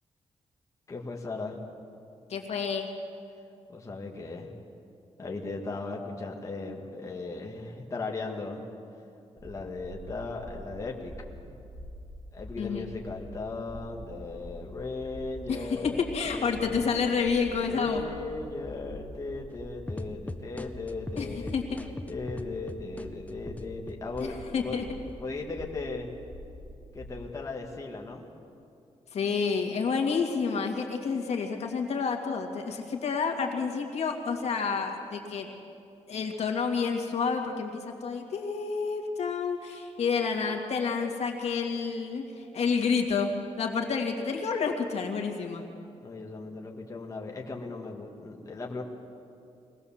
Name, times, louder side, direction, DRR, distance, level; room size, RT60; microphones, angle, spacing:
voice 1, 0.9-1.6 3.7-4.5 5.2-8.6 9.4-11.1 11.4-11.6 12.3-21.5 22.1-24.9 25.2-26.1 26.9-28.3 46.0-48.8, left 3 dB, 30° left, -1 dB, 1.8 m, -37 dB
voice 2, 2.3-2.9 12.6-12.9 15.5-18.0 21.2-21.8 24.5-24.8 29.1-35.5 36.1-37.7 38.0-45.6, left 5 dB, 70° left, 2 dB, 2.2 m, -29 dB
sound 1, 9.4-27.2, equal, 20° right, 2.4 m, -46 dB
sound 2, 19.9-24.3 24.7-25.4, left 2 dB, 10° left, 0.7 m, -40 dB
22.5 x 18.0 x 7.2 m, 2.6 s
wide cardioid pair, 155°, 11 cm